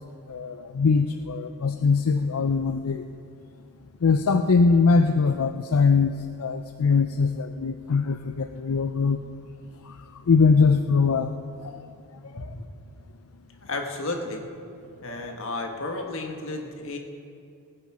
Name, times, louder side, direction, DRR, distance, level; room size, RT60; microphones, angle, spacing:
voice 1, 0.3-3.0 4.0-9.2 9.9-10.0 10.3-11.4 11.6-11.8 15.1-15.3, left 4 dB, 80° left, 8 dB, 0.5 m, -22 dB
voice 2, 13.6-14.5 15.0-17.0, left 2 dB, 60° left, 3 dB, 1.5 m, -32 dB
19.5 x 9.6 x 4.9 m, 2.5 s
head